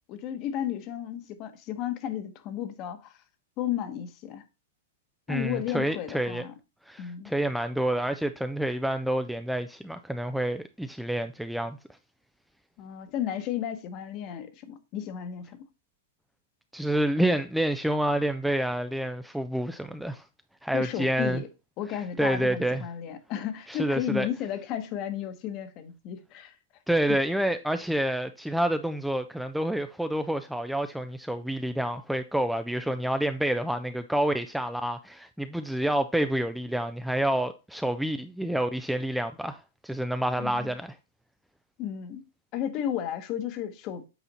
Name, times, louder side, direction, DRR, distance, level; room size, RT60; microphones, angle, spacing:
voice 1, 0.1-3.2 3.6-4.4 5.3-6.5 7.0-7.3 12.8-15.6 20.7-21.5 21.8-26.5 27.1-27.2 40.4-40.7 41.8-42.3 42.5-44.1, left 10 dB, 35° left, 1.0 m, -33 dB
voice 2, 5.3-6.4 6.9-11.8 16.7-20.2 20.6-21.4 22.2-22.9 23.7-24.3 26.9-41.0, right 1 dB, ahead, 0.3 m, -28 dB
8.1 x 4.3 x 4.1 m
hypercardioid pair, 145°, 0 cm